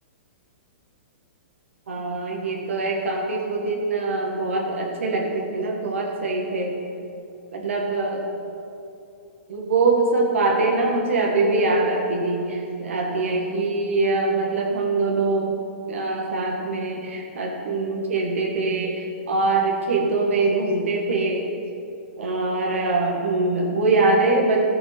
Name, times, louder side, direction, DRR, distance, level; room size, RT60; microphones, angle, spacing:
voice 1, 1.9-6.8 7.5-8.2 9.5-15.6 15.9-21.5 22.2-24.6, right 3 dB, 80° right, 0 dB, 1.9 m, -23 dB
14.5 x 6.8 x 6.0 m, 2.7 s
hypercardioid pair, 160°, 7 cm